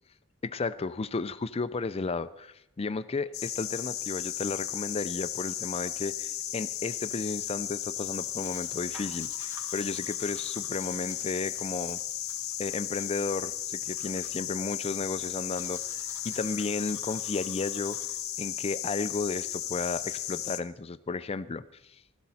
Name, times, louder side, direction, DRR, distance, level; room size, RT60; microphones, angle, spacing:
voice 1, 0.4-12.0 12.6-18.0 18.4-21.6 21.9-22.0, left 4 dB, 30° left, 14 dB, 0.4 m, -33 dB
sound 1, 3.3-20.6, left 12 dB, 80° left, 0.9 m, -35 dB
Domestic sounds home sounds, 7.9-18.2, right 1 dB, 15° right, 3.0 m, -53 dB
16.0 x 13.5 x 4.2 m, 0.84 s
head